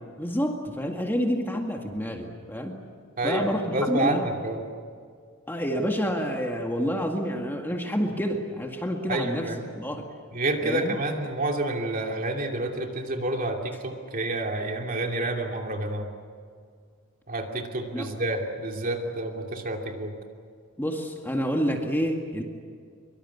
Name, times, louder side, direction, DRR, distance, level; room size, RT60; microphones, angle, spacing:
voice 1, 0.2-2.7 3.2-4.2 5.5-9.5 9.7-10.1 10.6-11.0 17.9-18.1 20.8-22.4, equal, 10° left, 2 dB, 1.9 m, -28 dB
voice 2, 3.2-4.6 9.1-9.7 10.3-16.1 17.3-20.1, right 2 dB, 40° right, 2 dB, 2.8 m, -29 dB
24.5 x 24.0 x 8.4 m, 2.1 s
head